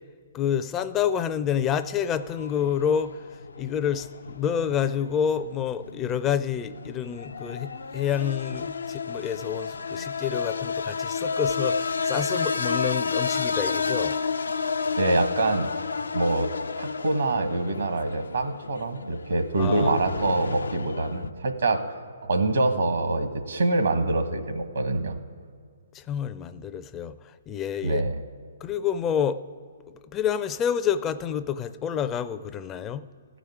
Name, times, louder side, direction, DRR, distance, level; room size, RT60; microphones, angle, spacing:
voice 1, 0.3-3.2 3.6-14.2 19.6-19.9 25.9-28.0 28.6-29.4 30.1-33.0, left 8 dB, 20° left, 11 dB, 0.4 m, -28 dB
sound 1, 1.5-21.3, left 5 dB, 85° left, 0.4 m, -31 dB
voice 2, 15.0-15.7 16.1-16.5 16.8-21.8 22.2-25.2 27.8-28.2, right 2 dB, 75° right, 7 dB, 1.3 m, -25 dB
15.0 x 5.0 x 9.5 m, 2.1 s
hypercardioid pair, 140°, 0 cm